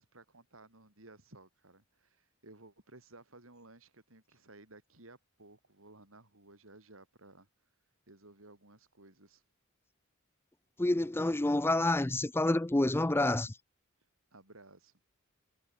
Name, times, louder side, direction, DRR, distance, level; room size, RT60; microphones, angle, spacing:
voice 1, 0.0-7.5 8.1-9.4 14.3-14.9, right 2 dB, 75° right, 4.8 m, -57 dB
voice 2, 10.8-13.5, left 2 dB, 10° left, 0.5 m, -28 dB
head